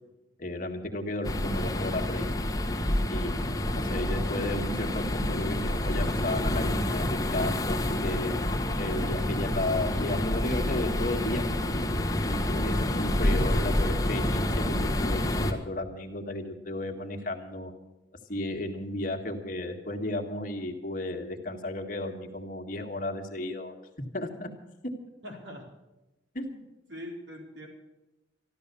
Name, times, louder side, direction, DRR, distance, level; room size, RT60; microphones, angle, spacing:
voice 1, 0.4-2.3 3.1-8.4 8.8-11.4 12.2-17.7 18.3-23.7 24.1-24.5 26.3-26.7, left 1 dB, 45° left, 3 dB, 1.8 m, -34 dB
sound 1, 1.2-15.5, left 1 dB, 20° left, 1.4 m, -28 dB
voice 2, 25.2-25.7 26.9-27.7, equal, 75° right, -1 dB, 4.4 m, -42 dB
13.5 x 12.5 x 6.9 m, 0.99 s
head